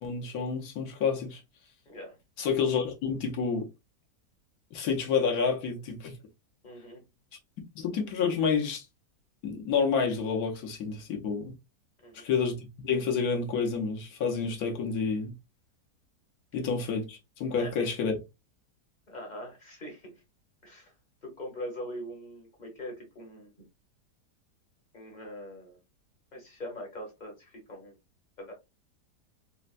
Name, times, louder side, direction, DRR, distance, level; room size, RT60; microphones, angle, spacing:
voice 1, 0.0-1.4 2.4-3.7 4.7-6.1 7.7-8.8 9.4-11.5 12.1-15.3 16.5-18.1, left 5 dB, 65° left, 1.2 m, -29 dB
voice 2, 1.9-2.2 6.6-7.0 12.0-12.3 17.5-17.9 19.1-20.1 20.6-20.9 21.2-23.5 24.9-25.8 26.3-27.9 28.4-28.5, equal, 35° left, 0.9 m, -42 dB
4.3 x 2.1 x 2.4 m
omnidirectional pair, 1.8 m